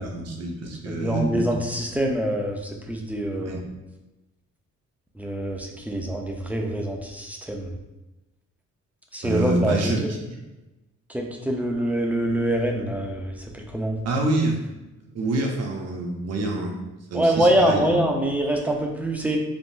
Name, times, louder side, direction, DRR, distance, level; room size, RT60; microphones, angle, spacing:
voice 1, 0.0-1.5 3.4-3.6 5.8-5.9 9.2-10.4 14.0-14.6 15.1-16.7 17.1-18.0, right 2 dB, 55° right, 1 dB, 0.7 m, -26 dB
voice 2, 0.9-2.6 2.9-3.6 5.2-7.7 9.1-10.0 11.1-14.0 17.1-19.4, right 1 dB, 5° right, 1 dB, 0.4 m, -25 dB
3.6 x 2.0 x 2.5 m, 1.0 s
cardioid pair, 90°, 30 cm